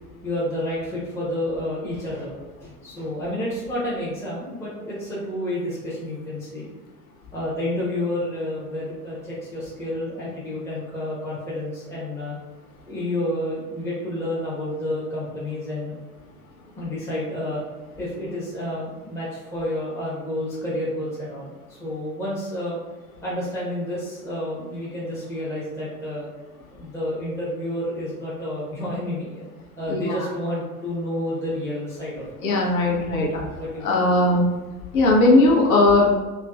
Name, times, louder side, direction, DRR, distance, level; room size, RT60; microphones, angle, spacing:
voice 1, 0.2-2.3 2.6-6.7 7.3-12.4 12.9-15.9 16.8-17.6 18.0-22.8 23.2-26.3 26.7-29.4 29.8-32.5 33.5-33.8, left 1 dB, 5° left, -8 dB, 0.7 m, -30 dB
voice 2, 32.4-33.4 33.8-34.5 34.9-36.1, left 2 dB, 60° left, -2 dB, 0.9 m, -18 dB
3.3 x 2.1 x 2.3 m, 1.3 s
figure-of-eight pair, 70°, 47 cm